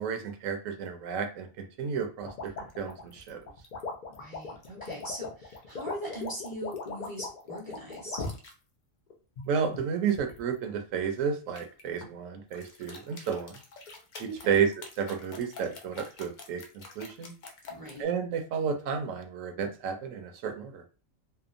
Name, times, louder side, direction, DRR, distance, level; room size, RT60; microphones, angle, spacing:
voice 1, 0.0-3.4 9.5-13.6 14.2-14.7 15.0-17.3 18.0-20.8, right 7 dB, 75° right, 6 dB, 0.9 m, -32 dB
sound 1, 2.3-8.5 9.1-10.4 11.5-12.1 12.5-18.0, left 4 dB, 60° left, 0.5 m, -40 dB
voice 2, 4.2-8.3 14.2-14.7 17.7-18.0, right 1 dB, 20° left, -4 dB, 0.7 m, -40 dB
2.7 x 2.0 x 2.5 m, 0.34 s
omnidirectional pair, 1.4 m